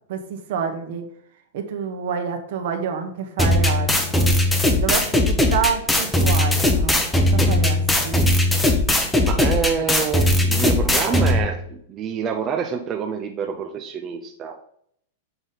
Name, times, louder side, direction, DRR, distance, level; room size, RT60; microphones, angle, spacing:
voice 1, 0.1-1.0 1.5-4.3 4.7-8.2, right 6 dB, 60° right, 6 dB, 1.2 m, -28 dB
sound 1, 3.4-11.4, left 1 dB, 10° left, 0.8 m, -19 dB
voice 2, 9.2-14.6, right 7 dB, 25° right, 3 dB, 0.5 m, -27 dB
7.0 x 4.0 x 4.0 m, 0.67 s
supercardioid pair, 150°, 0 cm